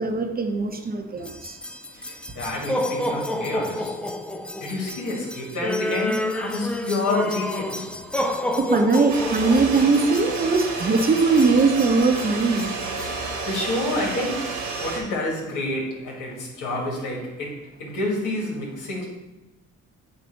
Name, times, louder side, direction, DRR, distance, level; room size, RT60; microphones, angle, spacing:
voice 1, 0.0-1.6 8.2-12.7, right 4 dB, 30° right, 5 dB, 0.8 m, -21 dB
sound 1, 1.2-13.2, left 1 dB, 5° left, 0.4 m, -30 dB
voice 2, 1.9-3.9 4.6-7.9 12.9-14.5 14.8-19.1, left 2 dB, 85° left, -2 dB, 2.0 m, -29 dB
sound 2, 9.1-15.0, right 3 dB, 75° right, 1.6 m, -30 dB
7.8 x 2.7 x 5.3 m, 1.1 s
cardioid pair, 90°, 30 cm